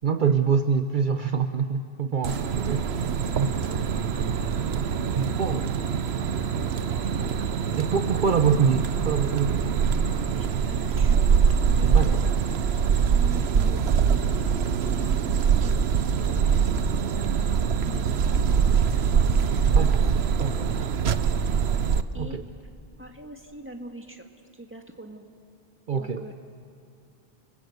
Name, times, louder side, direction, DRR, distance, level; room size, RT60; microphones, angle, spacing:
voice 1, 0.0-2.9 3.4-3.6 5.1-5.7 7.8-9.8 11.9-12.2 19.8-20.0 20.4-20.7 22.2-22.4 25.9-26.2, right 6 dB, 55° right, 8 dB, 0.9 m, -25 dB
sound 1, 2.2-22.0, right 7 dB, 80° right, 1.1 m, -23 dB
voice 2, 4.0-5.6 6.9-7.6 10.3-11.4 11.7-12.2 12.9-14.4 15.0-17.5 17.9-20.1 20.6-20.9 21.2-21.7 22.1-22.4 23.0-24.3 24.5-25.3 25.9-26.3, right 1 dB, 10° right, 3 dB, 1.9 m, -43 dB
29.5 x 20.5 x 8.1 m, 2.5 s
omnidirectional pair, 1.1 m